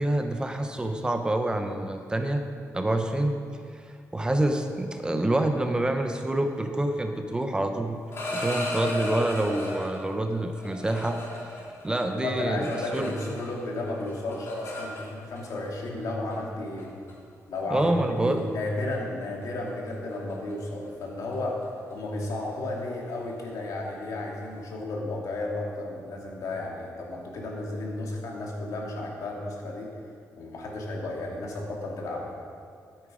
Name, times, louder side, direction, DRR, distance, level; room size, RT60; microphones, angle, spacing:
voice 1, 0.0-2.4 2.7-3.4 3.7-3.8 4.1-8.0 8.3-11.2 11.8-13.1 17.7-18.4, right 1 dB, 15° right, 6 dB, 0.7 m, -27 dB
sound 1, 7.9-10.0 10.6-13.6 13.9-15.4 16.3-16.5 16.8-17.1 17.5-17.8 18.2-18.4 18.7-19.0 19.2-24.6, left 1 dB, 45° left, 3.0 m, -36 dB
voice 2, 12.1-16.9 17.5-17.9 18.2-21.6 21.9-29.9 30.4-32.4, left 2 dB, 75° left, -2 dB, 2.4 m, -33 dB
13.0 x 8.8 x 5.0 m, 2.3 s
cardioid pair, 125°, 6 cm